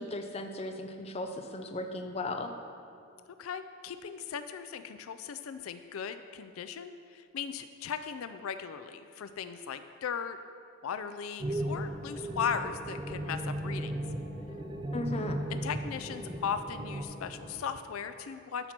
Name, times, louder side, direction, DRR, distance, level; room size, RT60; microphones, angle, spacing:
voice 1, 0.0-2.5 14.9-15.4, left 2 dB, 30° left, 5 dB, 0.6 m, -36 dB
voice 2, 3.4-10.4 10.8-14.0 15.5-18.7, left 7 dB, 80° left, 10 dB, 0.4 m, -37 dB
sound 1, 11.4-17.0, right 1 dB, 20° right, 0.4 m, -36 dB
sound 2, 11.6-17.6, right 1 dB, 50° left, 1.8 m, -47 dB
11.5 x 4.3 x 5.9 m, 2.4 s
head